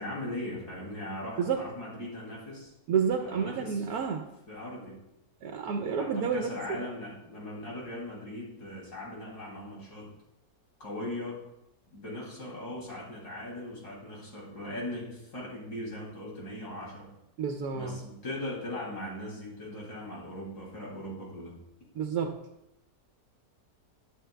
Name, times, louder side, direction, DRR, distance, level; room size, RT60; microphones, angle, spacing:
voice 1, 0.0-2.7 3.2-3.9 4.5-5.0 5.9-10.1 10.8-11.4 11.9-17.1 17.7-21.6, left 1 dB, 85° left, -4 dB, 3.4 m, -39 dB
voice 2, 2.9-4.2 5.4-6.8 17.4-18.0 22.0-22.4, right 6 dB, 80° right, 4 dB, 1.2 m, -30 dB
13.0 x 7.1 x 2.3 m, 0.87 s
omnidirectional pair, 1.7 m